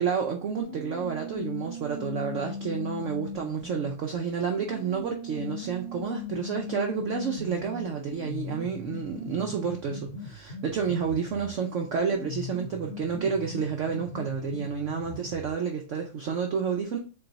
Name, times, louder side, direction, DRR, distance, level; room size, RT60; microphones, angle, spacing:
voice 1, 0.0-17.0, right 6 dB, 80° right, 3 dB, 0.6 m, -30 dB
sound 1, 0.6-3.9 4.6-11.6 12.1-15.6, left 3 dB, 45° left, 0.6 m, -39 dB
3.9 x 3.5 x 3.9 m, 0.36 s
omnidirectional pair, 2.0 m